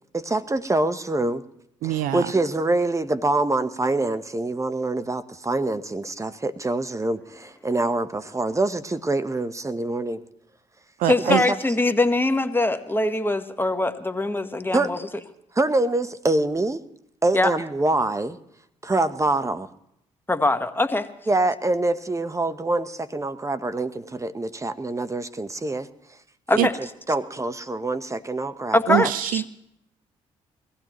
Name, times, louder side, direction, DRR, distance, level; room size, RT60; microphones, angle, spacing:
voice 1, 0.1-1.4 1.8-10.2 11.3-11.6 14.7-14.9 15.6-16.8 17.2-18.4 18.8-19.7 21.3-25.9 26.5-26.7 27.1-29.1, right 2 dB, 20° right, 11 dB, 0.9 m, -25 dB
voice 2, 1.8-2.3 11.0-11.4 26.6-26.7 28.9-29.5, right 12 dB, 75° right, 16 dB, 0.5 m, -23 dB
voice 3, 11.0-15.0 17.3-17.5 20.3-21.1 26.5-26.8 28.7-29.4, left 2 dB, 15° left, 9 dB, 1.3 m, -22 dB
21.5 x 15.5 x 3.0 m, 0.78 s
hypercardioid pair, 50°, 14 cm